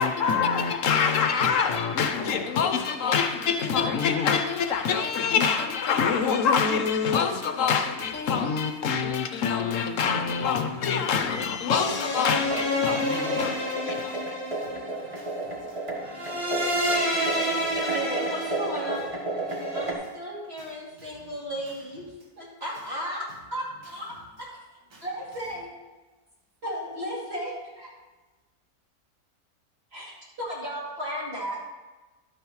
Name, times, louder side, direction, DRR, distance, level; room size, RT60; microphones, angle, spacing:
voice 1, 0.0-14.2, left 6 dB, 65° left, 1.0 m, -25 dB
voice 2, 2.0-3.3 3.7-3.9 4.3-4.8 5.9-6.1 6.5-6.6 7.6-8.3 8.6-9.0 9.7-9.9 10.3-10.4 10.8-11.3 12.0-12.4 12.7-13.5 13.9-18.0 18.4-18.7 19.4-20.1 20.5-22.3 22.9-23.0 23.3-23.5 23.8-24.5 24.9-25.6, right 2 dB, 75° right, 2.1 m, -54 dB
sound 1, 11.7-19.9, equal, 20° right, 1.2 m, -28 dB
voice 3, 17.7-19.1 19.7-22.1 22.4-23.2 23.5-24.1 24.4-24.5 25.0-25.7 26.6-27.9 29.9-31.6, equal, 40° right, 2.8 m, -34 dB
12.0 x 9.1 x 3.1 m
omnidirectional pair, 1.6 m